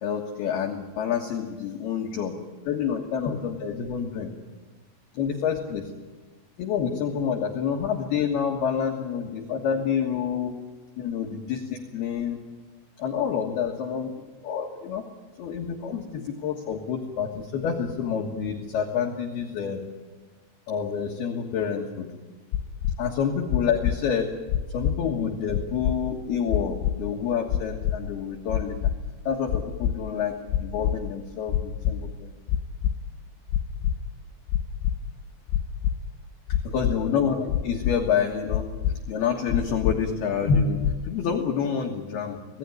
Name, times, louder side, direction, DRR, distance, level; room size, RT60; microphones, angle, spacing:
voice 1, 0.0-2.4 2.7-4.3 5.1-5.9 6.6-10.6 11.0-12.4 13.0-14.1 14.4-15.0 15.4-19.8 20.7-22.1 23.0-24.3 24.7-28.8 29.2-32.4 36.6-38.7 39.1-42.6, left 7 dB, 60° left, 1 dB, 3.0 m, -28 dB
sound 1, 22.5-22.9 23.5-23.9 24.5-24.9 25.5-26.0 26.5-26.9 27.5-28.0 28.5-28.9 29.5-29.9 30.5-30.9 31.5-32.0 32.5-32.9 33.5-33.9 34.5-34.9 35.5-35.9 36.5-36.9 37.5-37.9 38.5-38.9 39.5-39.9 40.5-40.9, left 11 dB, 80° left, 3.6 m, -24 dB
26.5 x 18.5 x 9.6 m, 1.3 s
omnidirectional pair, 5.8 m